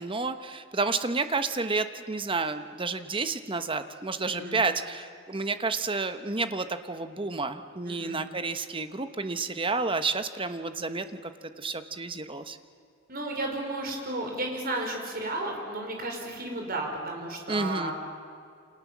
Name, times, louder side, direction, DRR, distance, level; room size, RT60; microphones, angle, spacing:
voice 1, 0.0-11.3 11.6-12.6 17.5-17.9, right 3 dB, 25° right, 10 dB, 1.1 m, -30 dB
voice 2, 4.2-4.6 7.8-8.2 13.1-17.9, right 2 dB, 50° right, 2 dB, 5.1 m, -33 dB
29.0 x 26.5 x 7.4 m, 2.4 s
head